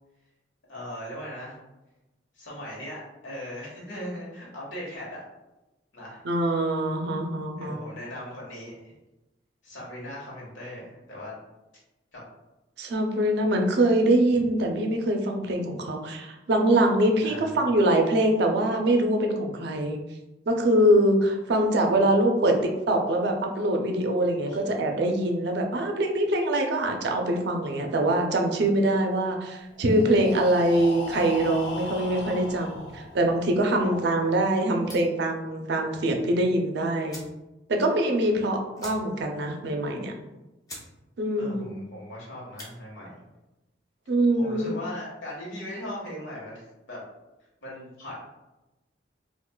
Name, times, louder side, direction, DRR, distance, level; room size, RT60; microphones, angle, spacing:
voice 1, 0.7-1.6 2.3-5.2 5.9-6.2 7.6-8.9 9.6-11.3 12.1-12.2 14.3-14.4 17.2-17.6 24.5-24.8 33.8-34.3 41.4-43.2 44.4-47.0 47.6-48.2, left 1 dB, 90° left, -4 dB, 1.3 m, -39 dB
voice 2, 6.2-7.8 12.8-20.0 20.5-37.2 37.7-40.1 41.2-41.7 44.1-44.8, right 1 dB, 60° right, 3 dB, 0.5 m, -24 dB
Breathing, 29.7-33.6, left 1 dB, 70° left, 0.5 m, -37 dB
sound 1, 34.8-35.2 36.6-36.7 37.0-37.4 37.8-37.9 38.1-38.3 38.7-39.3 39.7-39.8 40.3-40.4 40.6-40.9 41.3-41.6 42.4-42.7, left 1 dB, 20° left, 0.6 m, -44 dB
3.7 x 2.4 x 2.2 m, 1.0 s
head